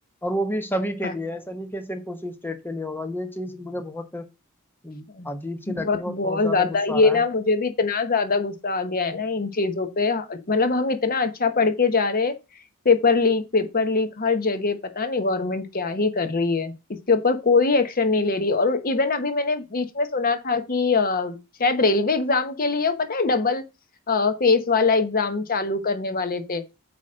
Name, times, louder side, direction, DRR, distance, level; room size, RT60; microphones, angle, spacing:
voice 1, 0.2-4.3 4.8-7.2, equal, 10° left, 0.9 m, -31 dB
voice 2, 5.7-12.3 12.8-16.7 17.1-23.6 24.1-26.6, left 4 dB, 40° left, 0.9 m, -22 dB
8.5 x 3.1 x 5.0 m
head